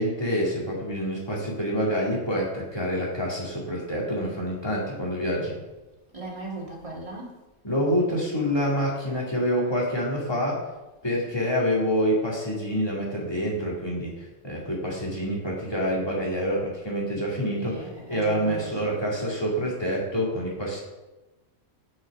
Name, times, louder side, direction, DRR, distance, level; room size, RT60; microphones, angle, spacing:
voice 1, 0.0-5.6 7.6-10.6 11.0-20.8, equal, 20° left, -4 dB, 2.3 m, -27 dB
voice 2, 6.1-7.4 17.6-19.0, right 2 dB, 25° right, -3 dB, 2.2 m, -38 dB
8.0 x 6.3 x 5.3 m, 1.1 s
omnidirectional pair, 1.4 m